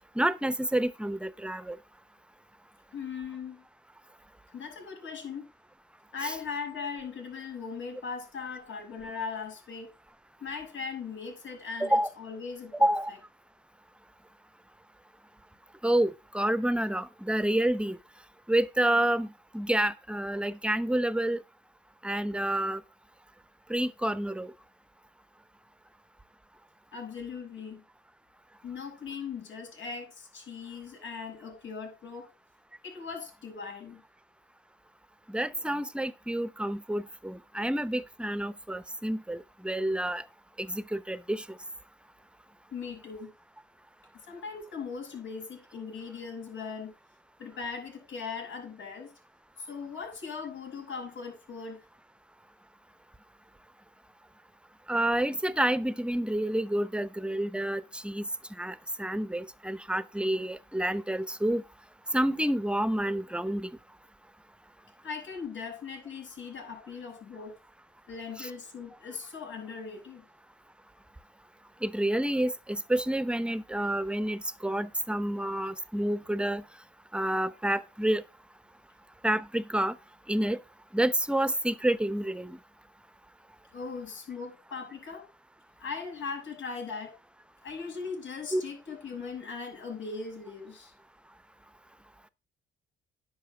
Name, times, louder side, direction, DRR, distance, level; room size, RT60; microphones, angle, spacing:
voice 1, 0.2-1.8 6.2-6.3 11.8-12.1 12.8-13.1 15.8-18.0 18.5-19.3 19.5-21.4 22.0-22.8 23.7-24.5 35.3-40.2 40.6-41.6 54.9-58.3 58.6-61.6 62.1-63.7 68.4-68.5 71.8-76.6 77.1-78.2 79.2-80.0 80.3-80.6 80.9-82.6 88.5-88.6, right 1 dB, 5° right, 0.9 m, -29 dB
voice 2, 2.9-3.6 4.5-5.4 6.1-9.9 10.4-12.9 26.9-27.8 28.6-32.3 32.8-34.0 42.7-43.3 44.3-46.9 47.4-49.1 49.6-51.8 65.0-67.6 68.1-70.2 83.7-85.3 85.8-87.2 87.6-90.9, left 5 dB, 75° left, 6.7 m, -39 dB
10.5 x 6.2 x 5.0 m
cardioid pair, 90°, 20 cm